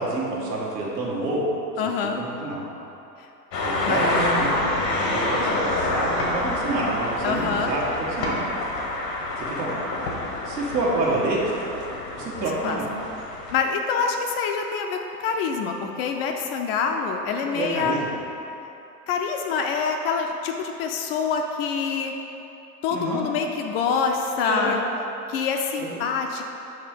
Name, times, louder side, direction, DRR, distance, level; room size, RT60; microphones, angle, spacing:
voice 1, 0.0-1.4 2.2-2.6 3.6-4.6 5.0-8.4 9.5-9.8 10.4-11.6 12.1-12.9 17.5-18.2 22.9-23.2 24.4-24.7 25.8-25.9, right 2 dB, 85° right, -4 dB, 1.4 m, -27 dB
voice 2, 1.8-2.2 3.2-3.3 3.9-4.0 7.2-7.7 12.6-12.8 13.5-18.0 19.1-22.1 22.8-24.8 25.3-26.4, left 5 dB, 40° left, 3 dB, 0.4 m, -26 dB
sound 1, 3.5-13.6, left 2 dB, 80° left, 1.1 m, -27 dB
5.7 x 3.2 x 5.0 m, 3.0 s
hypercardioid pair, 105°, 49 cm